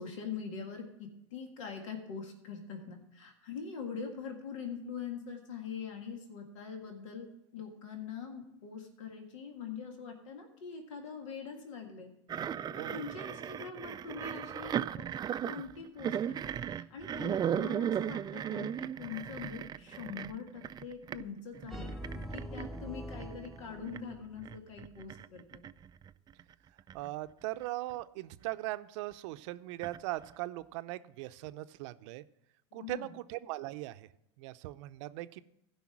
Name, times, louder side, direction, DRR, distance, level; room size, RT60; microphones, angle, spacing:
voice 1, 0.0-7.3 7.5-12.1 12.7-15.1 15.5-21.9 22.3-25.6 32.7-33.1, left 6 dB, 80° left, 3 dB, 1.8 m, -43 dB
sound 1, 12.3-21.2 21.5-27.1 27.4-27.9 28.5-28.6 29.8-30.3, right 9 dB, 25° right, 0.4 m, -37 dB
sound 2, 21.7-24.7, equal, ahead, 0.8 m, -44 dB
voice 2, 26.9-32.2 32.7-34.1 34.4-35.4, right 17 dB, 70° right, 12 dB, 0.6 m, -39 dB
15.5 x 5.5 x 6.0 m, 0.83 s
hypercardioid pair, 95°, 16 cm